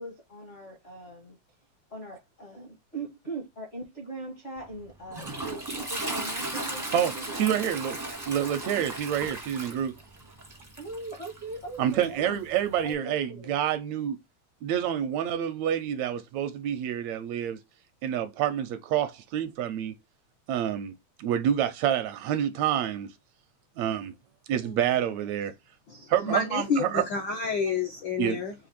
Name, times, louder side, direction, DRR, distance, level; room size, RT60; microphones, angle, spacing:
voice 1, 0.0-1.4 1.9-7.6 10.8-12.4 12.8-13.6 24.6-25.4, right 2 dB, 45° left, 0.7 m, -41 dB
Toilet flush, 4.6-12.9, right 2 dB, 20° right, 0.5 m, -37 dB
voice 2, 6.9-8.0 8.3-9.9 11.8-14.2 14.6-17.6 18.0-19.9 20.5-23.1 23.8-24.1 24.5-25.5 26.1-27.0 28.2-28.4, right 10 dB, 80° right, 1.7 m, -28 dB
voice 3, 25.9-28.5, left 4 dB, 75° left, 1.0 m, -29 dB
5.1 x 2.5 x 4.1 m
omnidirectional pair, 3.3 m